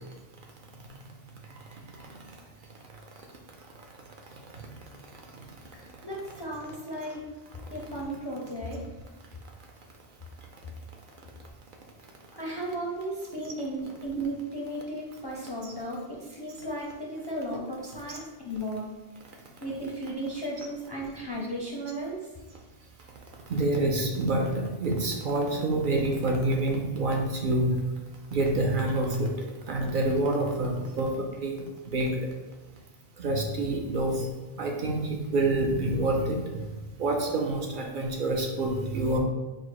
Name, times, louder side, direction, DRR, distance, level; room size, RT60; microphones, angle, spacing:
voice 1, 5.7-7.2 7.7-8.9 12.4-18.9 19.6-22.3, right 1 dB, 35° left, -3 dB, 0.4 m, -35 dB
voice 2, 23.5-27.8 28.3-29.3 29.7-31.1 31.4-31.5 31.9-32.1 33.2-34.2 34.6-36.4 37.0-39.2, right 2 dB, 60° right, 1 dB, 0.6 m, -27 dB
4.3 x 2.1 x 4.4 m, 1.2 s
omnidirectional pair, 1.1 m